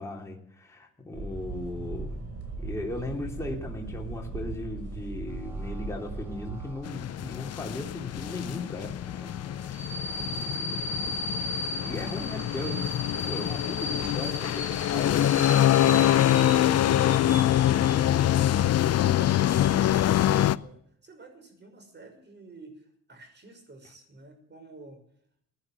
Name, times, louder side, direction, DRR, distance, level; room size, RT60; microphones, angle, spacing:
voice 1, 0.0-2.2 2.6-8.9 9.2-9.3 9.7-10.0 10.4-11.2 11.8-15.3, left 2 dB, 10° left, -1 dB, 3.1 m, -37 dB
sound 1, 1.1-6.7, right 3 dB, 55° right, 5.8 m, -37 dB
sound 2, 5.3-20.5, left 2 dB, 10° right, 4.5 m, -38 dB
sound 3, 6.8-20.6, left 12 dB, 55° left, 0.6 m, -25 dB
voice 2, 10.1-10.7 16.5-18.8 19.1-25.0, right 3 dB, 35° right, 5 dB, 6.0 m, -49 dB
17.0 x 10.0 x 7.8 m, 0.66 s
cardioid pair, 90°, 30 cm